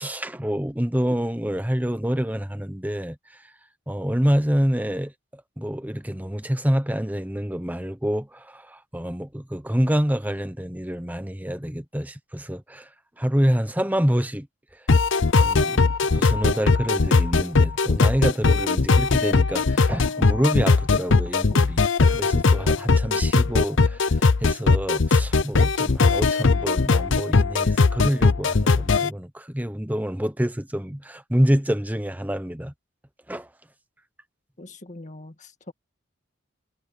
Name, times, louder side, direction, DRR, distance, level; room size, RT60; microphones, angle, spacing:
voice 1, 0.0-3.5 3.9-12.9 13.2-14.5 14.7-14.8 15.3-32.7 33.3-33.5, equal, 10° right, 1.0 m, -27 dB
sound 1, 14.9-29.1, left 4 dB, 60° left, 0.7 m, -19 dB
voice 2, 34.6-35.7, left 2 dB, 35° left, 2.0 m, -42 dB
head